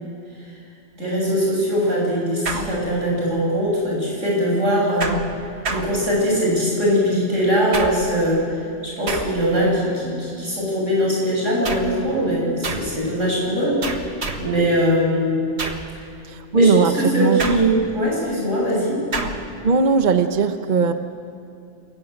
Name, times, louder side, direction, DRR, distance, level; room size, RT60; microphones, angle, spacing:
voice 1, 1.0-5.1 5.7-8.4 9.0-14.1 14.4-15.4 16.5-19.0, equal, 90° right, -3 dB, 7.9 m, -21 dB
sound 1, 2.5-3.3 5.0-6.5 7.7-8.3 9.1-9.7 11.6-12.1 12.6-13.0 13.8-14.6 15.6-16.0 17.4-18.0 19.1-19.6, right 3 dB, 60° right, 1.8 m, -30 dB
voice 2, 16.3-17.5 19.6-20.9, right 4 dB, 40° right, 8 dB, 1.0 m, -18 dB
28.0 x 15.0 x 9.1 m, 2.5 s
omnidirectional pair, 1.3 m